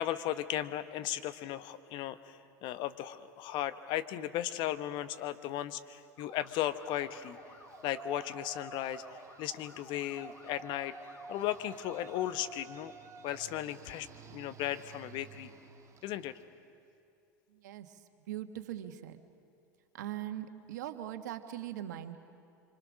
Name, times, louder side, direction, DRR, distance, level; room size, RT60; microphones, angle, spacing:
voice 1, 0.0-7.4 7.8-9.0 9.4-11.0 11.3-12.9 13.2-15.5 16.0-16.4, left 13 dB, 55° left, 12 dB, 1.1 m, -36 dB
sound 1, 6.2-12.3, left 1 dB, 25° left, 4.1 m, -54 dB
Yell, 6.3-16.5, right 5 dB, 35° right, 1.7 m, -52 dB
voice 2, 17.5-19.2 19.9-22.2, right 12 dB, 75° right, 8 dB, 1.4 m, -41 dB
26.0 x 25.0 x 6.3 m, 2.5 s
hypercardioid pair, 85°, 10 cm